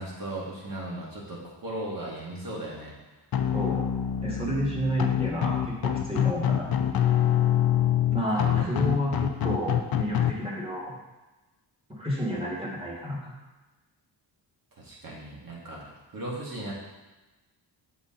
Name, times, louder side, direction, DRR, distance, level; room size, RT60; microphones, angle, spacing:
voice 1, 0.0-2.9 8.3-8.9 14.8-16.7, right 1 dB, 55° right, -5 dB, 1.9 m, -37 dB
sound 1, 3.3-10.3, left 10 dB, 60° left, 0.5 m, -25 dB
voice 2, 3.5-3.9 4.2-6.7 8.1-11.0 12.0-13.3, equal, 15° right, -4 dB, 1.6 m, -30 dB
6.9 x 4.2 x 3.8 m, 1.1 s
wide cardioid pair, 125°, 42 cm